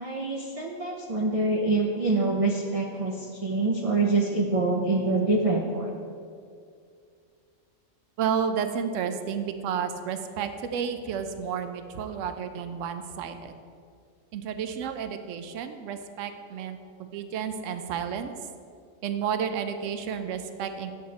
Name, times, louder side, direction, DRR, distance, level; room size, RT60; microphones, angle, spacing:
voice 1, 0.0-6.0, right 3 dB, 50° right, 0 dB, 0.4 m, -25 dB
voice 2, 8.2-13.5 14.3-18.3 19.0-20.9, right 7 dB, 75° right, 9 dB, 0.9 m, -31 dB
7.8 x 6.7 x 4.0 m, 2.3 s
omnidirectional pair, 1.4 m